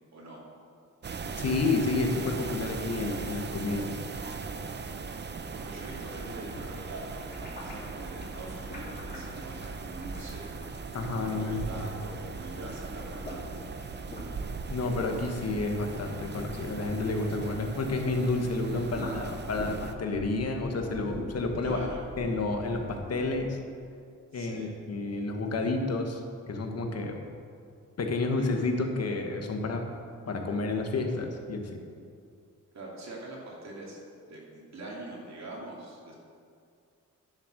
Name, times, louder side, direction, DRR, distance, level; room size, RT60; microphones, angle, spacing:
voice 1, 0.1-0.5 5.5-7.1 7.6-10.5 11.1-14.0 21.6-22.0 24.3-24.7 32.7-34.0 34.3-36.1, right 2 dB, 55° right, -3 dB, 2.5 m, -43 dB
sound 1, 1.0-19.9, right 4 dB, 35° right, 0.6 m, -39 dB
voice 2, 1.4-4.0 4.3-4.4 10.9-11.8 14.7-21.8 22.2-23.6 24.3-27.2 28.0-29.8 30.3-31.8, left 3 dB, 50° left, 3 dB, 1.4 m, -30 dB
sound 2, 5.9-11.9 12.2-18.2 18.5-23.3, left 1 dB, 25° left, 2.8 m, -43 dB
10.5 x 7.5 x 6.6 m, 2.3 s
wide cardioid pair, 140°, 32 cm